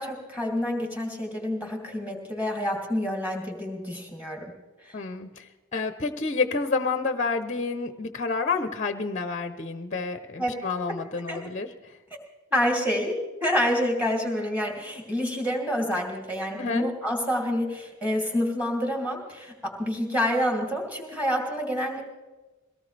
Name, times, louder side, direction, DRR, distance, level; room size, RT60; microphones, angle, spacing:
voice 1, 0.0-4.5 4.8-4.9 10.4-10.5 10.9-11.4 12.5-13.2 13.4-22.0, equal, 5° right, 0 dB, 2.8 m, -28 dB
voice 2, 4.9-11.7 16.6-16.9, left 4 dB, 30° left, 9 dB, 0.8 m, -29 dB
23.0 x 18.0 x 3.4 m, 1.2 s
head